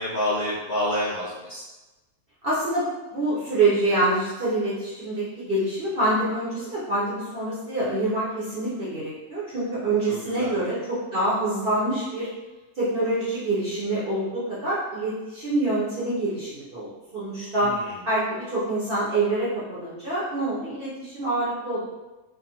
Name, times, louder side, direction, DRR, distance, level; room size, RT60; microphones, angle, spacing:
voice 1, 0.0-1.6 10.1-10.6 17.6-17.9, left 1 dB, 75° left, -7 dB, 0.5 m, -28 dB
voice 2, 2.4-12.3 12.7-17.7 18.0-21.8, right 2 dB, 60° right, -9 dB, 0.6 m, -26 dB
2.4 x 2.4 x 2.8 m, 1.1 s
omnidirectional pair, 1.6 m